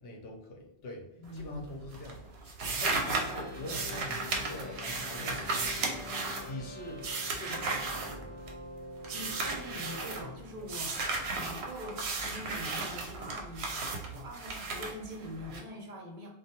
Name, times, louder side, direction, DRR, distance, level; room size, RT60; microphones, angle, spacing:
voice 1, 0.0-7.0 7.4-8.3, left 1 dB, 70° left, 0 dB, 0.9 m, -44 dB
voice 2, 1.2-1.9 9.1-13.7 14.1-16.3, equal, 45° right, -1 dB, 0.6 m, -43 dB
sound 1, 1.2-1.7 1.9-8.7 9.0-10.2 10.7-15.6, right 3 dB, 75° right, 0.8 m, -35 dB
sound 2, 2.8-12.1, left 3 dB, 35° left, 0.6 m, -47 dB
2.2 x 2.2 x 2.7 m, 0.85 s
omnidirectional pair, 1.1 m